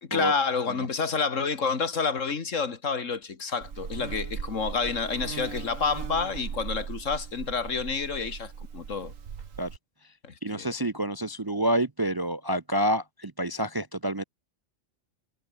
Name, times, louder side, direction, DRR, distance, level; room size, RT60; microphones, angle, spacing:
voice 1, 0.0-9.1 10.2-10.7, left 5 dB, 75° left, 2.3 m, -29 dB
Buzz, 3.6-9.8, right 6 dB, 85° right, 1.9 m, -38 dB
voice 2, 10.4-14.2, right 1 dB, 25° right, 0.6 m, -28 dB
omnidirectional pair, 1.3 m